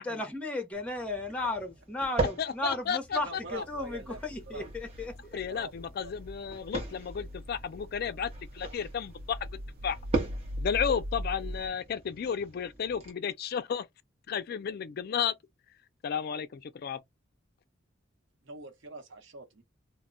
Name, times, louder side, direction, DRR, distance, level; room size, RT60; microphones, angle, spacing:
voice 1, 0.0-5.4, left 2 dB, 5° left, 0.8 m, -35 dB
sound 1, 0.7-13.1, right 3 dB, 35° right, 0.9 m, -40 dB
voice 2, 2.4-3.2 5.3-9.4 9.8-10.0 10.6-13.8 14.3-15.3 16.0-17.0, left 7 dB, 55° left, 0.4 m, -33 dB
voice 3, 3.2-4.2 4.5-4.7 5.5-5.7 6.0-6.1 18.4-19.6, right 2 dB, 70° right, 0.8 m, -43 dB
sound 2, 3.5-11.7, equal, 50° right, 0.3 m, -41 dB
2.1 x 2.1 x 3.6 m
head